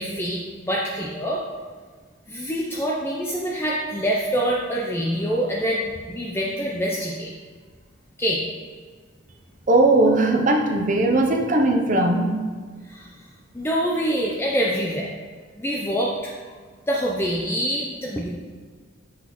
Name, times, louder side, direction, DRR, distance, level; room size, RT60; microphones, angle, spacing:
voice 1, 0.0-1.4 2.3-7.3 8.2-8.4 12.8-13.1 13.5-15.1 15.6-16.3 16.9-18.3, equal, 15° left, -3 dB, 0.5 m, -25 dB
voice 2, 9.7-12.4, right 2 dB, 40° right, 3 dB, 0.6 m, -19 dB
6.1 x 5.9 x 3.0 m, 1.5 s
head